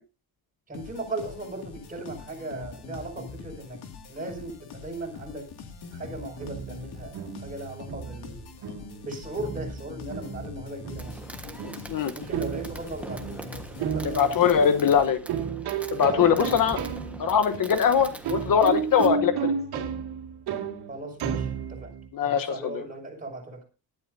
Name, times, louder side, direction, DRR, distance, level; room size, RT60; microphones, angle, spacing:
sound 1, 0.7-15.3, left 4 dB, 85° left, 2.4 m, -43 dB
voice 1, 0.7-3.8 4.1-5.5 5.9-8.3 9.0-11.8 12.1-14.8 16.0-16.6 20.9-21.9 22.2-23.6, right 2 dB, 20° right, 1 dB, 6.2 m, -38 dB
sound 2, 6.4-22.1, right 7 dB, 80° right, 2.5 m, -33 dB
Fireworks, 11.0-19.1, right 1 dB, 5° right, 1.4 m, -42 dB
voice 2, 14.0-15.2 15.9-16.8 17.2-19.8 22.1-22.8, left 7 dB, 60° left, 9 dB, 1.2 m, -22 dB
18.5 x 12.5 x 2.7 m, 0.31 s
cardioid pair, 130°, 38 cm